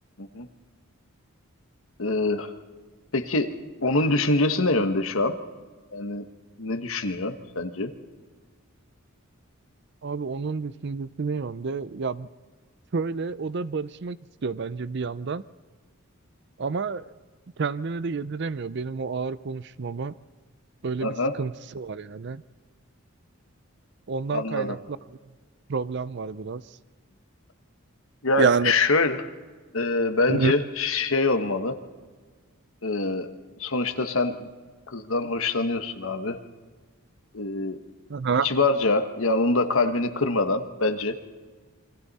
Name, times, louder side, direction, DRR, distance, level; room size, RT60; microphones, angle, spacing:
voice 1, 2.0-2.5 3.1-3.5 3.8-5.3 5.9-6.2 6.6-7.9 21.0-21.4 24.3-24.8 28.2-29.3 29.7-31.8 32.8-33.3 33.6-34.5 34.9-36.4 37.3-37.8 38.4-41.2, left 3 dB, 70° left, 8 dB, 1.3 m, -24 dB
voice 2, 10.0-12.3 12.9-14.2 14.4-15.4 16.6-17.0 17.6-20.1 20.8-21.1 21.4-21.5 21.8-22.4 24.1-24.8 25.7-26.6 28.4-28.7 30.3-30.5 38.1-38.5, right 5 dB, 55° right, 17 dB, 0.5 m, -28 dB
28.5 x 23.0 x 4.2 m, 1.4 s
head